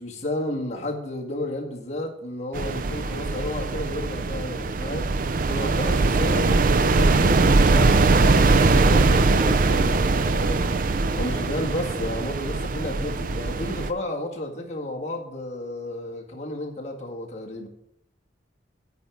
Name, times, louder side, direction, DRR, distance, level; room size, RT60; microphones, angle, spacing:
voice 1, 0.0-5.1 5.4-10.8 11.2-17.7, left 1 dB, 40° left, -1 dB, 1.9 m, -32 dB
sound 1, 2.5-13.9, right 3 dB, 50° right, 0.5 m, -21 dB
9.3 x 5.1 x 7.1 m, 0.75 s
head